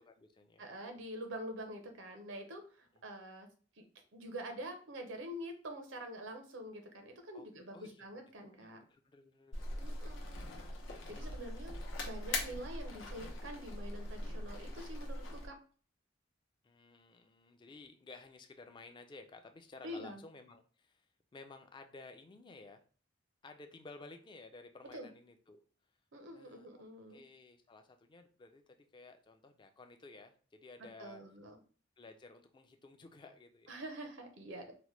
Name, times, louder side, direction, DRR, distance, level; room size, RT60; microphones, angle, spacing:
voice 1, 0.0-0.7 2.9-3.0 7.3-7.5 7.7-8.1 8.6-9.8 10.6-10.8 11.1-11.6 16.6-21.1 21.3-22.8 23.4-25.6 26.3-26.8 27.1-31.2 32.0-33.8, left 3 dB, 25° left, 6 dB, 0.3 m, -55 dB
voice 2, 0.6-3.5 3.8-3.9 4.1-8.8 9.8-10.6 11.1-11.8 12.0-15.5 19.8-20.2 24.9-25.1 26.1-27.2 31.0-31.6 33.7-34.8, right 1 dB, 85° right, 5 dB, 0.7 m, -46 dB
sound 1, 9.5-15.5, left 2 dB, 90° left, 0.7 m, -41 dB
2.9 x 2.1 x 3.1 m, 0.41 s
head